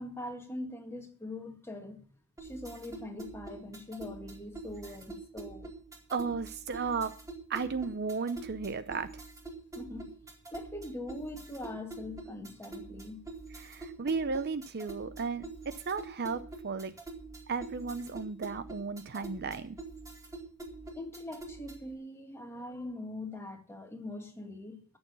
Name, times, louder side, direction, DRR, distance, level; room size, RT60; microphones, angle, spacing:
voice 1, 0.0-2.0 2.4-5.7 9.8-10.1 10.5-13.2 21.0-25.0, left 1 dB, 10° left, 1.8 m, -42 dB
sound 1, 2.4-21.9, right 3 dB, 15° right, 2.1 m, -46 dB
voice 2, 6.1-7.1 7.5-9.2 13.6-16.9 17.5-19.8, right 4 dB, 45° right, 0.6 m, -34 dB
13.0 x 7.1 x 6.8 m
head